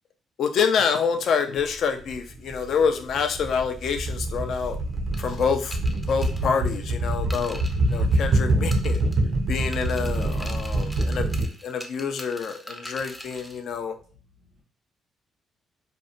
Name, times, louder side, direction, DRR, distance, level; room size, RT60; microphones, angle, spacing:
voice 1, 0.4-4.8 5.2-5.8 6.1-7.6 7.9-9.0 9.5-14.0, left 6 dB, 65° left, 0.4 m, -27 dB
sound 1, 1.6-1.7 2.1-11.5, right 2 dB, 60° right, 0.4 m, -25 dB
sound 2, 5.1-8.4 8.7-9.4 9.7-13.6, equal, 5° left, 0.4 m, -43 dB
voice 2, 10.2-10.8 12.9-14.6, left 1 dB, 85° right, 1.1 m, -57 dB
2.5 x 2.1 x 2.5 m
cardioid pair, 90°, 0 cm